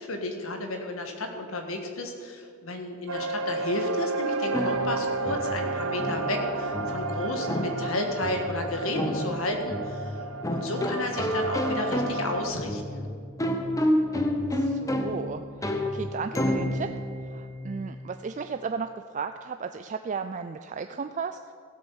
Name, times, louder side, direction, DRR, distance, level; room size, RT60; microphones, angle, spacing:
voice 1, 0.0-13.1, left 2 dB, 70° left, 4 dB, 1.7 m, -32 dB
sound 1, 3.1-12.5, right 3 dB, 80° right, 0.8 m, -32 dB
sound 2, 4.5-18.1, left 1 dB, 15° left, 0.9 m, -30 dB
voice 2, 14.5-16.9 17.2-21.5, right 5 dB, 35° right, 8 dB, 0.3 m, -35 dB
15.5 x 8.0 x 7.1 m, 2.3 s
head